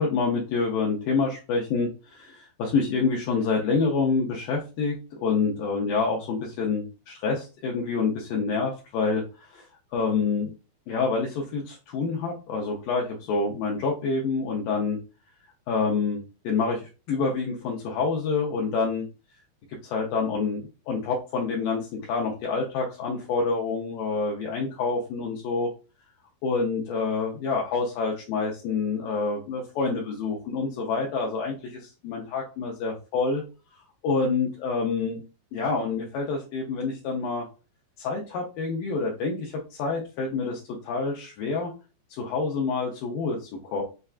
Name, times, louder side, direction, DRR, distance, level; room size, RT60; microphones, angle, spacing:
voice 1, 0.0-4.9 5.2-9.6 9.9-10.5 10.9-15.0 15.7-19.1 19.8-25.7 26.4-33.4 34.0-35.2 35.5-37.5 38.0-41.7 42.1-43.8, left 4 dB, 80° left, -1 dB, 1.9 m, -27 dB
6.5 x 2.3 x 2.4 m, 0.32 s
omnidirectional pair, 4.6 m